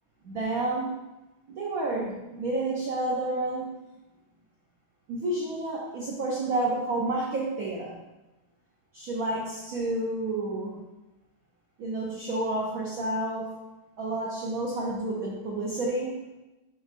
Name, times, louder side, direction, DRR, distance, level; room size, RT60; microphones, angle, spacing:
voice 1, 0.2-1.0 1.5-3.7 5.1-8.0 8.9-10.8 11.8-13.5 14.0-16.2, right 2 dB, 85° right, -3 dB, 0.7 m, -30 dB
4.4 x 3.0 x 2.5 m, 1.0 s
omnidirectional pair, 2.2 m